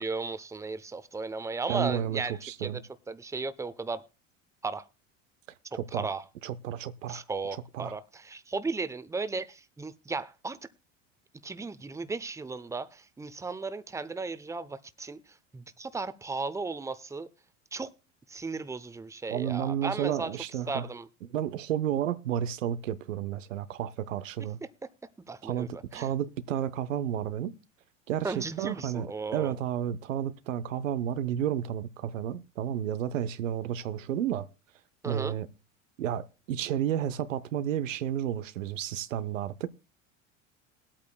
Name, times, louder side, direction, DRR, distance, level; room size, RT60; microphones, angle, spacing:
voice 1, 0.0-2.3 2.6-2.8 3.1-4.0 4.6-4.8 5.9-6.2 7.1-10.6 11.4-15.2 15.5-17.3 17.7-17.9 18.3-20.3 20.7-21.1 25.3-25.7 25.9-26.1 28.2-29.5 35.0-35.4, right 4 dB, 10° right, 0.7 m, -35 dB
voice 2, 1.7-2.8 5.7-6.1 6.4-7.2 7.7-7.9 19.3-20.9 21.3-24.6 25.4-27.5 28.1-34.5 35.0-35.5 36.0-39.7, right 10 dB, 85° right, 0.7 m, -31 dB
20.5 x 8.7 x 2.3 m
hypercardioid pair, 80°, 38 cm